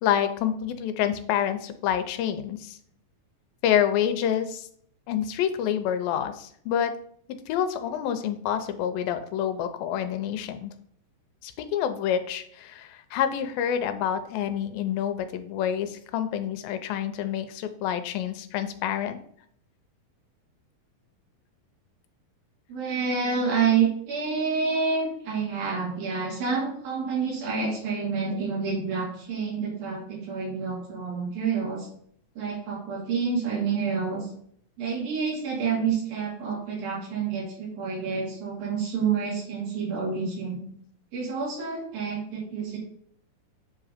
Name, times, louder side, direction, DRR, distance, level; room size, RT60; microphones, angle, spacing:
voice 1, 0.0-2.8 3.6-4.7 5.1-6.9 7.5-10.7 11.4-19.2, left 9 dB, 85° left, 9 dB, 2.4 m, -27 dB
voice 2, 22.7-31.9 32.4-34.3 34.8-40.6 41.1-42.8, right 5 dB, 80° right, -3 dB, 4.1 m, -28 dB
7.6 x 3.8 x 5.0 m, 0.63 s
omnidirectional pair, 4.1 m